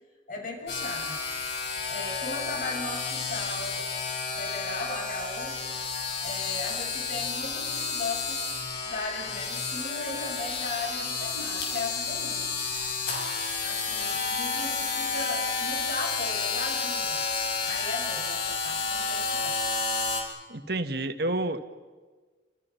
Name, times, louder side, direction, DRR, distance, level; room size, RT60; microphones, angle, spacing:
voice 1, 0.3-1.5 1.8-3.9 4.3-5.6 6.2-12.4 13.6-17.3 17.6-19.6, left 3 dB, 50° left, 1 dB, 7.1 m, -37 dB
sound 1, 0.7-20.2, left 4 dB, 65° left, 6.5 m, -31 dB
voice 2, 20.5-21.6, right 2 dB, 60° right, 7 dB, 1.9 m, -29 dB
29.0 x 27.5 x 5.9 m, 1.4 s
head